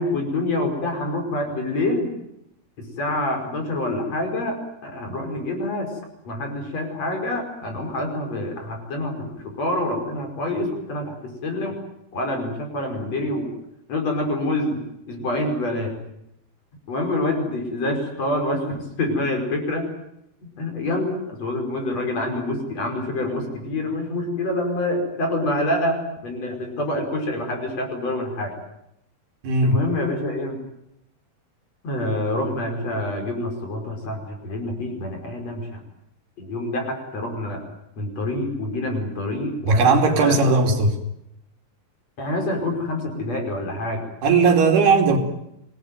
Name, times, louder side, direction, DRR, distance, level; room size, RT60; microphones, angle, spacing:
voice 1, 0.0-2.1 2.8-6.0 6.2-11.7 12.1-13.5 13.9-14.8 15.1-16.0 16.9-19.9 20.4-28.5 29.6-30.6 31.8-35.8 36.4-37.6 38.0-40.8 42.2-44.0, left 1 dB, 40° left, 3 dB, 6.4 m, -26 dB
voice 2, 29.4-29.8 39.7-41.0 44.2-45.2, right 4 dB, 70° right, 4 dB, 4.7 m, -17 dB
26.0 x 19.5 x 9.3 m, 0.81 s
omnidirectional pair, 4.8 m